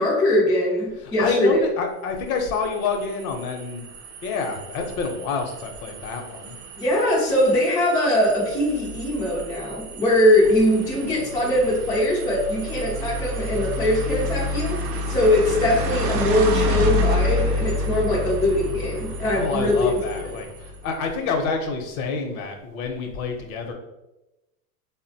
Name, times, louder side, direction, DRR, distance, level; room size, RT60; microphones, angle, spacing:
voice 1, 0.0-1.6 6.8-14.8 15.1-20.0, left 1 dB, 10° left, -6 dB, 0.3 m, -21 dB
voice 2, 1.0-3.8 4.2-6.6 19.3-23.7, left 4 dB, 60° left, 4 dB, 0.7 m, -28 dB
sound 1, 2.4-20.9, left 1 dB, 85° right, 0.6 m, -29 dB
3.7 x 2.1 x 2.6 m, 0.96 s
supercardioid pair, 125°, 47 cm